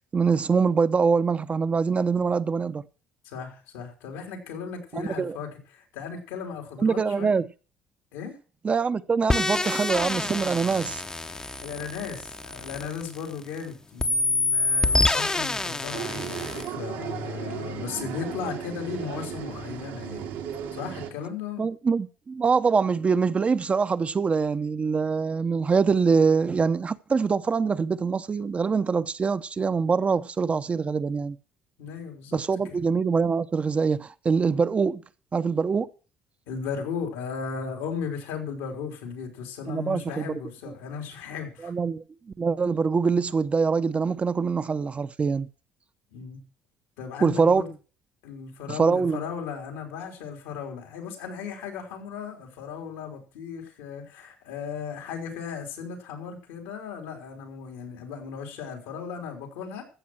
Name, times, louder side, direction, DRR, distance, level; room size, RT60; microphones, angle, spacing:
voice 1, 0.1-2.8 4.9-5.4 6.8-7.4 8.6-11.0 21.6-31.4 32.3-35.0 35.3-35.9 39.7-40.3 41.6-42.0 42.4-45.5 47.2-47.6 48.7-49.2, right 5 dB, 30° right, 0.8 m, -24 dB
voice 2, 3.2-7.3 8.1-8.4 11.3-20.3 20.7-21.7 31.8-32.8 36.5-41.7 46.1-46.4 47.0-47.7 48.2-59.8, left 6 dB, 90° left, 3.8 m, -36 dB
sound 1, 9.3-13.6 14.0-16.7, left 2 dB, 15° left, 0.8 m, -27 dB
sound 2, 15.9-21.1, right 8 dB, 85° right, 2.4 m, -35 dB
14.5 x 7.3 x 6.2 m
supercardioid pair, 80°, 4 cm